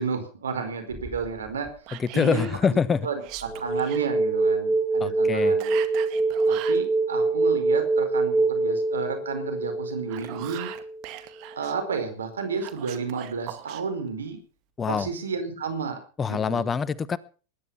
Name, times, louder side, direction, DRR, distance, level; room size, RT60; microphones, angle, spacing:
voice 1, 0.0-1.7 2.1-2.5 3.0-3.2 3.6-5.7 6.5-10.7 11.6-14.4 14.9-16.0 16.3-16.7, right 5 dB, 85° right, 8 dB, 4.8 m, -31 dB
sound 1, 0.9-1.7 3.3-11.0, right 3 dB, 5° right, 7.1 m, -25 dB
Whispering, 1.9-2.6 3.2-4.0 5.6-6.8 9.9-11.7 12.6-13.8, right 15 dB, 55° right, 2.1 m, -40 dB
voice 2, 2.0-3.1 5.0-5.6 14.8-15.1 16.2-17.2, left 6 dB, 25° left, 18 dB, 1.1 m, -25 dB
20.0 x 11.0 x 5.7 m, 0.39 s
hypercardioid pair, 95°, 0 cm